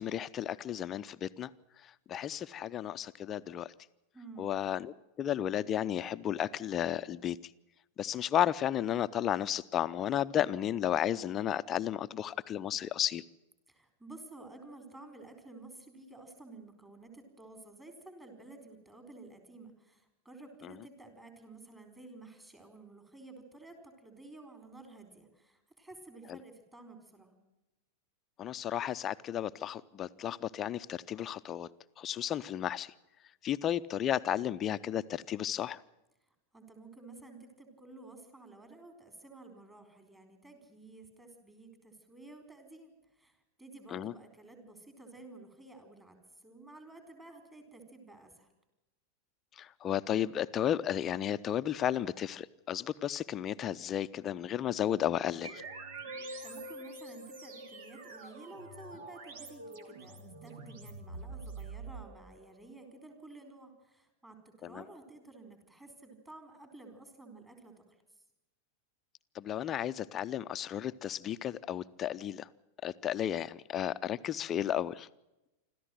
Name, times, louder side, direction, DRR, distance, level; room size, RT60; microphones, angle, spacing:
voice 1, 0.0-1.5 2.1-3.7 4.4-7.4 8.0-13.2 28.4-31.7 32.0-32.9 33.4-35.8 43.9-44.1 49.6-55.5 64.6-64.8 69.3-72.5 72.8-75.1, left 10 dB, 30° left, 13 dB, 0.6 m, -33 dB
voice 2, 4.1-4.5 13.7-27.4 36.5-48.5 56.1-68.0, right 2 dB, 15° right, 6 dB, 4.3 m, -52 dB
sound 1, 55.4-62.6, right 3 dB, 55° right, 2.6 m, -46 dB
26.0 x 14.0 x 7.8 m, 0.97 s
figure-of-eight pair, 90°, 0 cm